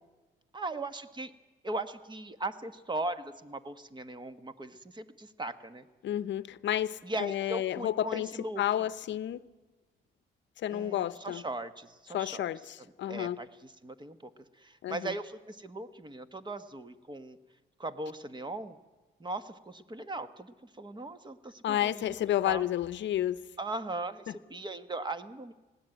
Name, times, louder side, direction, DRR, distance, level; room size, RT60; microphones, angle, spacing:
voice 1, 0.5-1.3 1.6-5.9 7.0-8.6 10.7-12.5 13.1-14.3 14.6-17.4 17.8-18.8 19.2-22.2 22.4-22.6 23.6-25.5, right 2 dB, 20° right, 1.2 m, -39 dB
voice 2, 6.0-8.3 8.6-9.4 10.6-11.4 12.1-13.4 14.8-15.1 21.6-23.4, left 12 dB, 65° left, 0.7 m, -31 dB
20.5 x 16.5 x 9.0 m
cardioid pair, 90°, 20 cm